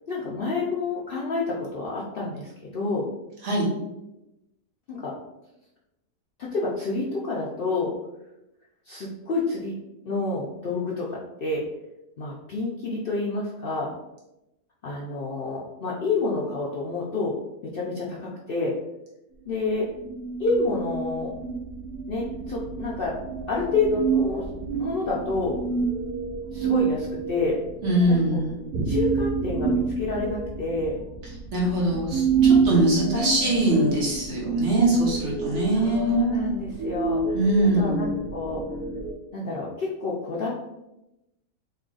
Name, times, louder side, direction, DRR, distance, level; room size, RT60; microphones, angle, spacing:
voice 1, 0.1-3.1 4.9-5.1 6.4-7.9 8.8-9.7 10.0-11.6 12.2-13.9 14.8-17.4 17.7-18.8 19.4-19.9 20.4-21.3 22.1-23.1 23.5-24.5 24.8-25.6 26.5-27.6 28.1-28.4 28.8-31.0 33.1-33.5 35.7-37.4 37.7-38.6 39.3-40.5, left 3 dB, 85° left, -4 dB, 0.4 m, -28 dB
sound 1, 20.0-39.1, right 5 dB, 80° right, 1.1 m, -28 dB
voice 2, 27.8-28.6 31.5-36.4 37.3-38.0, right 1 dB, 55° right, -5 dB, 1.3 m, -22 dB
3.2 x 2.3 x 3.8 m, 0.93 s
omnidirectional pair, 1.6 m